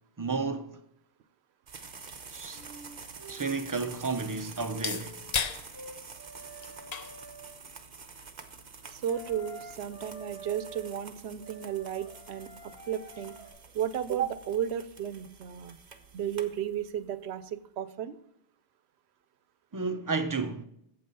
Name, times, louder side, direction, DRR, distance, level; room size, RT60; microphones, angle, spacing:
voice 1, 0.2-0.8 2.3-2.6 3.3-5.2 19.7-20.6, right 4 dB, 30° right, 0.4 m, -32 dB
sound 1, 1.7-17.1, right 5 dB, 45° right, 0.9 m, -48 dB
sound 2, 2.3-10.3, left 6 dB, 45° left, 0.6 m, -41 dB
sound 3, 2.5-4.4 4.7-7.5 9.0-11.0 11.4-13.5, right 1 dB, 75° left, 2.2 m, -48 dB
voice 2, 8.8-13.4 13.7-15.8 16.1-18.2, right 9 dB, 80° right, 0.9 m, -34 dB
8.7 x 7.5 x 5.5 m
omnidirectional pair, 1.1 m